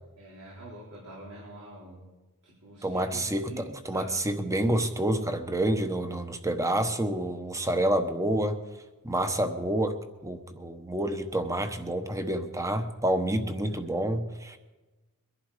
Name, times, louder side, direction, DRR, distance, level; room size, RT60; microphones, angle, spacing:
voice 1, 0.2-2.1 2.4-4.2, right 1 dB, 85° right, -5 dB, 3.9 m, -45 dB
voice 2, 2.8-3.5 3.8-8.6 9.0-10.0 10.2-14.6, right 1 dB, 15° right, 8 dB, 1.0 m, -28 dB
22.5 x 11.0 x 4.9 m, 1.2 s
head